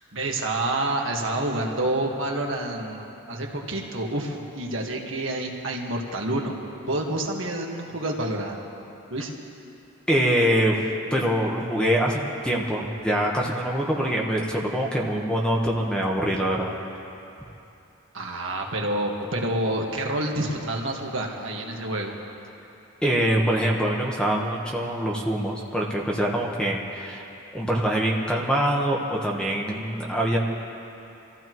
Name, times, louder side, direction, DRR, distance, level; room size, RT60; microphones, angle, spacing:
voice 1, 0.0-6.6 6.9-8.6 9.1-9.3 18.1-22.2, right 1 dB, 65° right, 0 dB, 1.6 m, -28 dB
voice 2, 10.1-10.8 11.1-16.8 23.0-27.2 27.5-30.4, equal, 5° left, -2 dB, 1.2 m, -24 dB
25.5 x 15.0 x 3.1 m, 2.9 s
head